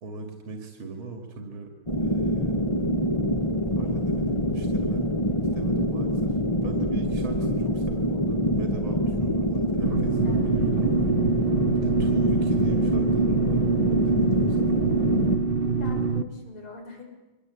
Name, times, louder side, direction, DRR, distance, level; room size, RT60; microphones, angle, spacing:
voice 1, 0.0-2.8 3.7-5.0 5.4-11.1 11.8-14.7, right 3 dB, 70° right, 4 dB, 3.3 m, -39 dB
sound 1, 1.9-15.4, equal, 15° left, 1.4 m, -25 dB
sound 2, 9.8-16.2, right 4 dB, 45° right, 0.7 m, -25 dB
voice 2, 10.2-10.6 15.6-17.1, left 3 dB, 85° left, 2 dB, 6.7 m, -43 dB
29.0 x 23.5 x 8.5 m, 1.1 s
omnidirectional pair, 2.3 m